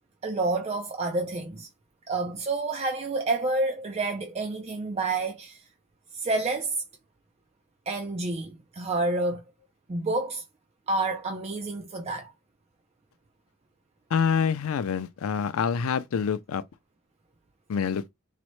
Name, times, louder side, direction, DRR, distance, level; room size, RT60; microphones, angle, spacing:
voice 1, 0.2-1.7 2.1-5.7 6.1-6.8 7.9-9.4 9.9-10.4 10.9-12.3, right 2 dB, 30° right, 0.4 m, -29 dB
voice 2, 14.1-16.6 17.7-18.0, left 6 dB, 90° left, 0.4 m, -26 dB
4.0 x 2.1 x 3.1 m
head